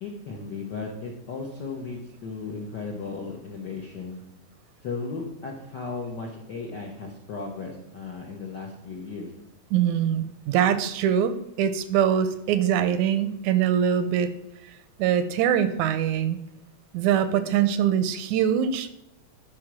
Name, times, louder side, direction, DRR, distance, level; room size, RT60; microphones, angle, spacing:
voice 1, 0.0-4.2 4.8-9.3, left 4 dB, 65° left, -1 dB, 1.1 m, -35 dB
voice 2, 9.7-14.3 15.0-16.4 16.9-18.9, right 9 dB, 85° right, 11 dB, 1.9 m, -23 dB
9.7 x 4.4 x 6.1 m, 0.80 s
omnidirectional pair, 3.4 m